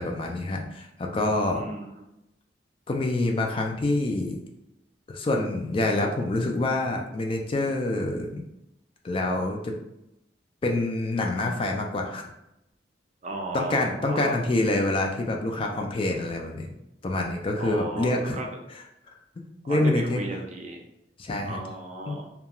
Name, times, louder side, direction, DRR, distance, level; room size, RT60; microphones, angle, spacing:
voice 1, 0.0-1.6 2.9-4.4 5.1-8.4 9.0-9.7 10.6-12.2 13.5-16.7 17.0-18.4 19.7-20.2 21.2-21.6 22.1-22.2, left 2 dB, 30° left, 2 dB, 0.3 m, -26 dB
voice 2, 1.5-2.0 13.2-14.4 17.6-18.6 19.6-20.8 21.4-22.3, right 2 dB, 40° right, 0 dB, 0.5 m, -35 dB
2.3 x 2.3 x 2.9 m, 0.85 s
head